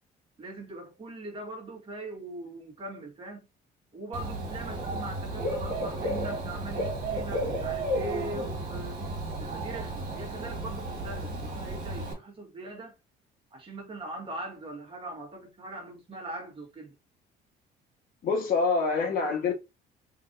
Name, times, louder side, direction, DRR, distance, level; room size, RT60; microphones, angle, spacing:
voice 1, 0.4-3.5 3.9-9.0 9.4-12.9 13.5-17.0, right 2 dB, 30° right, 1.7 m, -41 dB
Dog / Bird, 4.1-12.1, right 1 dB, 50° right, 2.0 m, -33 dB
voice 2, 18.2-19.5, left 4 dB, 55° left, 1.5 m, -26 dB
3.8 x 3.3 x 2.6 m
cardioid pair, 110°, 17 cm